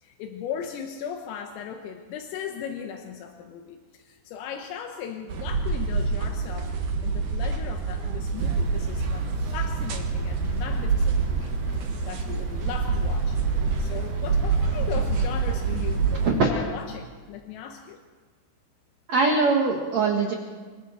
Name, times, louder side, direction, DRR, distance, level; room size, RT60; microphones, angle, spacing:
voice 1, 0.0-6.7 7.0-16.0 16.3-18.0, left 8 dB, 85° left, 4 dB, 3.8 m, -37 dB
sound 1, 5.3-16.3, right 4 dB, 65° right, 2.1 m, -26 dB
sound 2, 8.3-16.4, left 1 dB, 40° right, 5.7 m, -41 dB
voice 2, 19.1-20.3, right 4 dB, 85° right, 0 dB, 1.5 m, -22 dB
26.5 x 23.5 x 4.4 m, 1.5 s
omnidirectional pair, 5.9 m